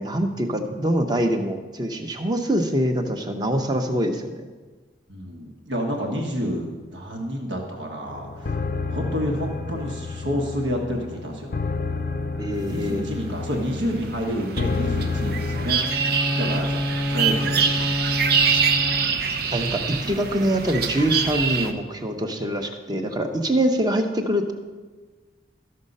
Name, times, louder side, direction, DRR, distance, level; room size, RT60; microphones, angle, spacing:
voice 1, 0.0-4.5 12.4-13.1 19.5-24.5, right 1 dB, 20° right, 5 dB, 0.8 m, -24 dB
voice 2, 5.1-8.6 8.9-11.5 12.7-15.8 16.4-16.8 17.1-17.8, equal, 85° right, 1 dB, 1.4 m, -29 dB
sound 1, 8.0-15.8, left 4 dB, 50° left, 0.5 m, -30 dB
sound 2, 12.9-21.7, right 6 dB, 55° right, 0.7 m, -25 dB
Bowed string instrument, 15.8-19.5, left 1 dB, 5° right, 0.4 m, -28 dB
13.0 x 6.4 x 5.4 m, 1.4 s
head